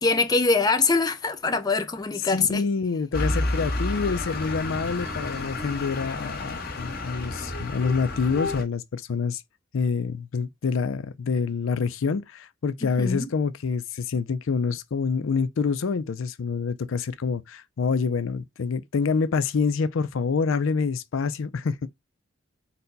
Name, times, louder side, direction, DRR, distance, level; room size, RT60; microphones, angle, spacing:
voice 1, 0.0-2.6 13.0-13.3, left 4 dB, 20° left, 0.4 m, -23 dB
voice 2, 2.3-9.4 9.7-21.9, left 5 dB, 75° left, 0.5 m, -27 dB
sound 1, 3.1-8.6, left 2 dB, 50° left, 1.4 m, -30 dB
4.1 x 2.2 x 3.9 m
head